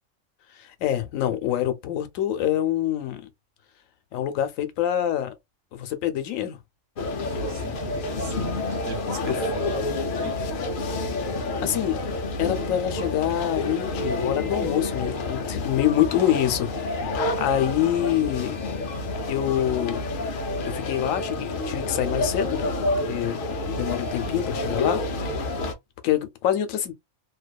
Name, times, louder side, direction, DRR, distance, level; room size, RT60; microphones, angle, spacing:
voice 1, 0.6-3.2 4.1-5.3 5.7-6.6 9.3-9.4 11.6-12.0 12.4-16.7 17.0-18.8 19.3-20.0 20.6-22.7 23.0-25.0 26.0-26.9, left 11 dB, 80° left, 1.0 m, -26 dB
sound 1, 7.0-25.7, left 2 dB, 60° left, 0.6 m, -29 dB
voice 2, 7.2-8.4 8.7-10.5 24.0-24.4, right 4 dB, 70° right, 1.2 m, -38 dB
2.6 x 2.3 x 2.2 m
omnidirectional pair, 1.4 m